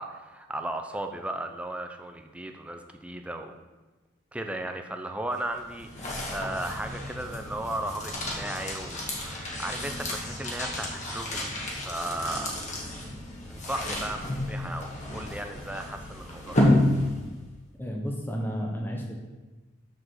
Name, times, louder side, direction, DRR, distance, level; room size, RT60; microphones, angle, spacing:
voice 1, 0.0-3.5 4.3-12.6 13.5-16.7, right 1 dB, 5° right, 5 dB, 0.5 m, -36 dB
sound 1, 5.3-17.5, left 1 dB, 35° left, 1.4 m, -30 dB
voice 2, 17.8-19.2, equal, 10° left, 0 dB, 0.9 m, -32 dB
6.2 x 4.9 x 6.4 m, 1.2 s
head